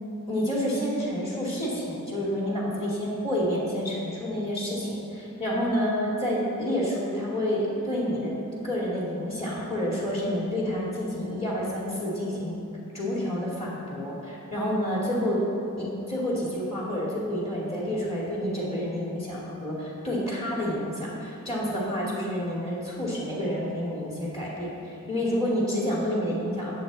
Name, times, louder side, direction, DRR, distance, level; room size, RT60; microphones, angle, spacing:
voice 1, 0.3-8.3 8.6-12.5 12.9-15.4 15.8-26.8, equal, 30° left, -5 dB, 2.3 m, -29 dB
18.0 x 7.2 x 4.0 m, 2.7 s
head